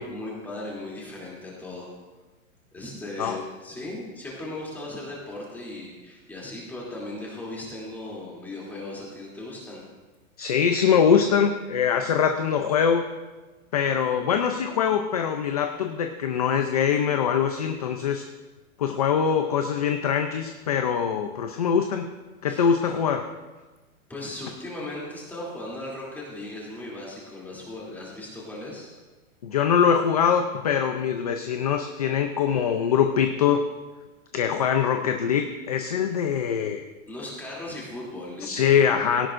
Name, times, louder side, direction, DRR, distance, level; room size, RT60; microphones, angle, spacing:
voice 1, 0.0-1.9 2.7-9.9 22.5-22.6 24.1-28.9 37.1-38.8, left 1 dB, 5° left, -5 dB, 2.9 m, -37 dB
voice 2, 10.4-13.0 13.7-18.2 18.8-22.1 22.4-23.2 29.4-33.6 34.3-36.9 38.4-39.3, left 7 dB, 30° left, 6 dB, 0.5 m, -23 dB
18.5 x 17.5 x 2.6 m, 1.2 s
hypercardioid pair, 175°, 41 cm